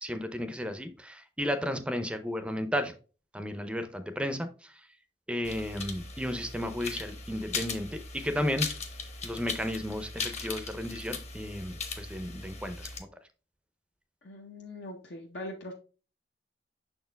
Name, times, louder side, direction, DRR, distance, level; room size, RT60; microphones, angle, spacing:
voice 1, 0.0-2.9 3.3-4.9 5.3-8.7 9.2-12.9, equal, 5° right, 9 dB, 0.5 m, -33 dB
sound 1, 5.4-13.0, left 4 dB, 40° left, 1.0 m, -39 dB
voice 2, 14.2-15.7, left 1 dB, 70° left, 0 dB, 0.8 m, -41 dB
6.4 x 4.4 x 3.3 m, 0.35 s
head